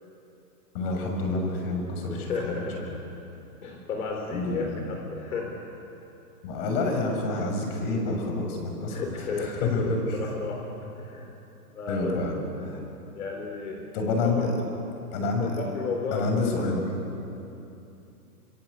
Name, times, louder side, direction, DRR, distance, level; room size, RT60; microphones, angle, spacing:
voice 1, 0.7-2.6 4.3-4.8 6.4-9.8 10.1-10.2 11.9-12.8 13.9-14.5 15.1-15.6 16.1-16.8, left 3 dB, 35° left, 2 dB, 6.6 m, -28 dB
voice 2, 2.1-2.9 3.6-5.6 8.9-10.7 11.0-11.3 11.7-12.1 13.1-13.9 14.2-14.7 15.4-16.6, left 4 dB, 60° left, 2 dB, 4.2 m, -33 dB
27.0 x 25.5 x 8.4 m, 2.9 s
hypercardioid pair, 160°, 47 cm